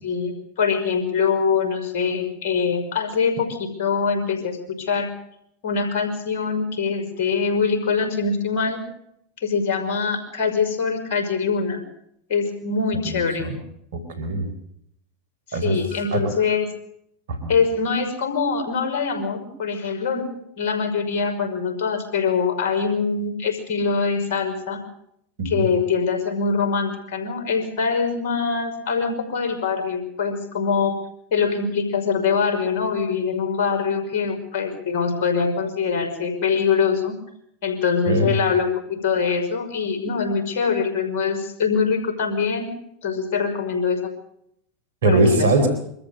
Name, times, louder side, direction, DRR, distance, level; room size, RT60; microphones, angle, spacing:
voice 1, 0.0-5.1 5.6-8.8 9.4-11.8 12.3-13.5 15.5-16.7 17.5-20.2 20.6-24.8 25.4-31.0 31.3-37.2 37.6-42.7 43.0-44.0 45.0-45.5, left 5 dB, 65° left, 5 dB, 5.5 m, -23 dB
voice 2, 13.0-13.6 13.9-14.5 15.5-15.8 16.1-16.3 17.3-17.5 25.4-25.7 38.1-38.4 45.0-45.7, right 2 dB, 75° right, 8 dB, 4.4 m, -21 dB
24.5 x 14.0 x 8.1 m, 0.74 s
hypercardioid pair, 85°, 0 cm